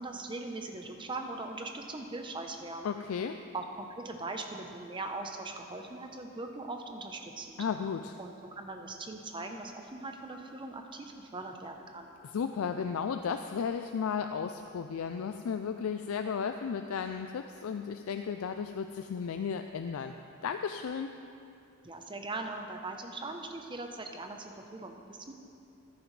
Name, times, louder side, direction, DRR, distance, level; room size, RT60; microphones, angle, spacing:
voice 1, 0.0-2.9 3.5-7.6 8.2-12.1 21.8-25.3, right 2 dB, 25° right, 4 dB, 0.8 m, -40 dB
voice 2, 2.8-3.4 7.6-8.2 12.3-20.1 20.4-21.1, left 6 dB, 90° left, 7 dB, 0.4 m, -34 dB
14.0 x 11.0 x 3.3 m, 2.7 s
head